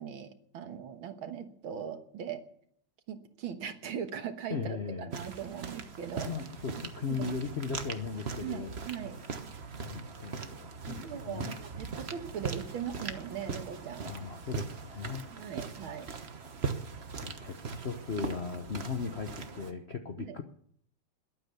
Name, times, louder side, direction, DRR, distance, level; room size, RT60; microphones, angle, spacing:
voice 1, 0.0-2.4 3.1-6.3 7.1-7.3 8.4-9.2 10.9-14.1 15.3-16.1 20.2-20.4, right 8 dB, 70° right, 8 dB, 2.1 m, -40 dB
voice 2, 4.5-5.1 6.2-8.8 9.8-11.6 14.0-15.3 16.6-16.7 17.2-20.4, left 5 dB, 55° left, 6 dB, 0.7 m, -37 dB
sound 1, 5.1-19.7, right 5 dB, 40° right, 1.1 m, -40 dB
21.5 x 8.9 x 6.8 m, 0.65 s
omnidirectional pair, 2.4 m